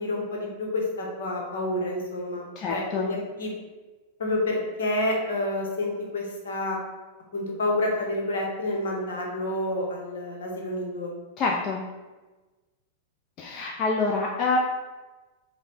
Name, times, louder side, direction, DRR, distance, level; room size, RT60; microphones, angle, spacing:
voice 1, 0.0-3.5 4.2-6.8 7.3-11.1, left 1 dB, 60° left, 0 dB, 1.0 m, -29 dB
voice 2, 2.6-3.1 11.4-11.9 13.4-14.6, left 4 dB, 35° left, -1 dB, 0.4 m, -26 dB
5.1 x 2.2 x 4.2 m, 1.2 s
figure-of-eight pair, 95°, 0 cm